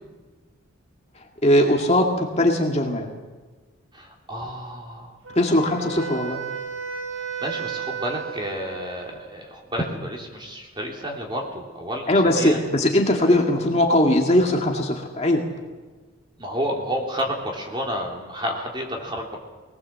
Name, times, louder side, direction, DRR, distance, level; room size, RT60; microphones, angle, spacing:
voice 1, 1.4-3.1 5.4-6.4 12.1-15.5, left 1 dB, 30° left, 1 dB, 2.0 m, -20 dB
voice 2, 3.9-5.1 5.5-5.6 5.9-6.0 6.2-6.4 7.4-12.6 16.4-19.4, equal, 20° right, 0 dB, 3.4 m, -30 dB
Wind instrument woodwind instrument, 5.2-9.3, right 7 dB, 80° right, 4.0 m, -33 dB
23.0 x 19.5 x 7.6 m, 1.3 s
head